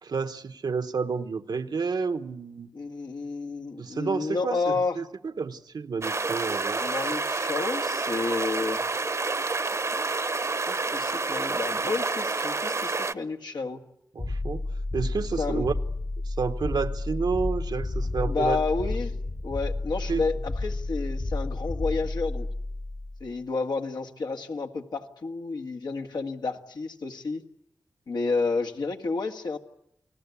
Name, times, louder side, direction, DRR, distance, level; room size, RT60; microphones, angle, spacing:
voice 1, 0.0-2.7 3.8-6.8 14.1-14.6 14.9-15.7 16.2-18.6 20.1-20.2, right 5 dB, 80° right, 1.1 m, -30 dB
voice 2, 2.7-5.0 6.8-8.8 10.7-13.8 15.4-15.7 18.1-19.1 19.4-22.5 23.2-27.4 28.1-29.6, left 4 dB, 90° left, 1.8 m, -30 dB
sound 1, 6.0-13.1, right 3 dB, 45° right, 0.9 m, -29 dB
sound 2, 14.2-23.3, left 2 dB, 40° left, 0.9 m, -31 dB
29.5 x 19.0 x 8.4 m
wide cardioid pair, 70°, 7 cm